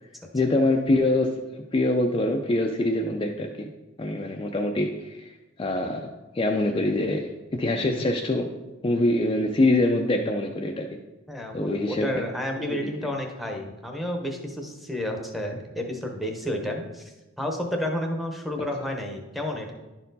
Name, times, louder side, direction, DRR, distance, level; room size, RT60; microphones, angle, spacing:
voice 1, 0.3-1.3 1.7-3.7 4.0-5.3 5.6-8.5 8.8-11.0 11.5-12.1 12.8-12.9, left 2 dB, 25° left, 2 dB, 0.4 m, -24 dB
voice 2, 11.3-19.7, left 1 dB, ahead, 2 dB, 0.9 m, -31 dB
11.0 x 4.3 x 4.0 m, 1.1 s
head